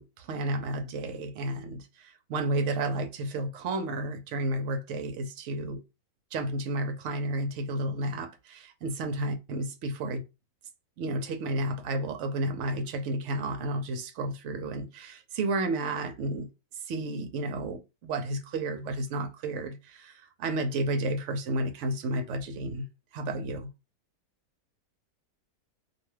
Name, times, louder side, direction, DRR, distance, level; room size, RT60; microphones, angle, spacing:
voice 1, 0.0-5.8 6.3-10.2 11.0-16.5 16.9-22.9 23.1-23.7, right 2 dB, 65° right, 0.8 m, -32 dB
2.7 x 2.2 x 3.2 m
omnidirectional pair, 1.6 m